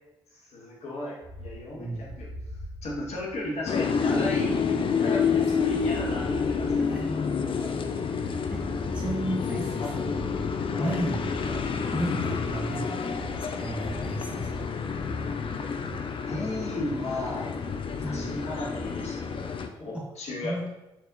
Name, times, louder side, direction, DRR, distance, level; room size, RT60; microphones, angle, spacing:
voice 1, 0.3-2.3 2.8-4.6 4.9-7.0 9.8-9.9 10.7-10.9 16.2-17.5 18.0-19.5 19.8-20.6, left 1 dB, 60° left, -3 dB, 1.5 m, -35 dB
sound 1, 1.2-16.1, equal, 40° right, 0.9 m, -43 dB
voice 2, 1.7-2.1 5.3-5.5 5.7-6.2 6.8-7.0 7.6-7.7 8.5-8.6 8.9-10.2 10.8-11.6 11.9-13.3 13.6-14.5 18.0-18.3 19.9-20.0 20.4-20.7, right 1 dB, 10° right, -3 dB, 1.0 m, -34 dB
sound 2, 3.7-19.7, left 6 dB, 45° left, 0.5 m, -29 dB
4.6 x 4.0 x 2.6 m, 0.96 s
hypercardioid pair, 40°, 12 cm